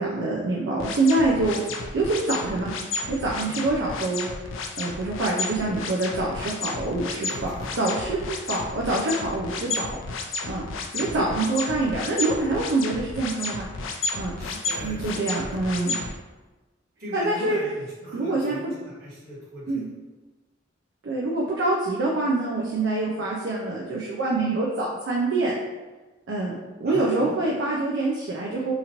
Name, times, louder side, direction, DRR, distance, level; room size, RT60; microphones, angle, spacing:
voice 1, 0.0-1.6 1.9-2.7 3.1-4.3 4.8-7.3 7.7-8.2 8.5-9.9 10.5-10.6 10.9-13.7 14.2-14.3 14.8-16.0 17.1-17.6 18.1-18.6 19.7-19.8 21.0-25.5 26.3-26.5 26.8-28.7, right 2 dB, 70° right, -3 dB, 0.4 m, -25 dB
sound 1, 0.8-16.1, left 3 dB, 75° left, 0.4 m, -32 dB
voice 2, 1.3-1.7 3.4-3.6 7.2-8.0 8.4-8.6 10.9-11.1 14.4-15.2 15.6-16.0 17.0-19.9 23.0-23.1 26.8-27.4, equal, 50° right, -9 dB, 1.3 m, -40 dB
2.9 x 2.5 x 2.9 m, 1.2 s
head